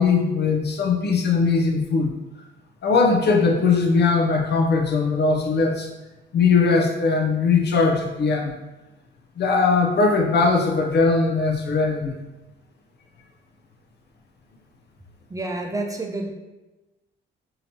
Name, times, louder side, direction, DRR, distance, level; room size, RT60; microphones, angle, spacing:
voice 1, 0.0-2.1 2.8-5.9 6.3-8.5 9.4-12.1, left 4 dB, 60° left, 1 dB, 0.7 m, -20 dB
voice 2, 15.3-16.3, right 2 dB, 15° right, 1 dB, 0.6 m, -29 dB
5.0 x 2.8 x 2.8 m, 1.1 s
cardioid pair, 90°, 20 cm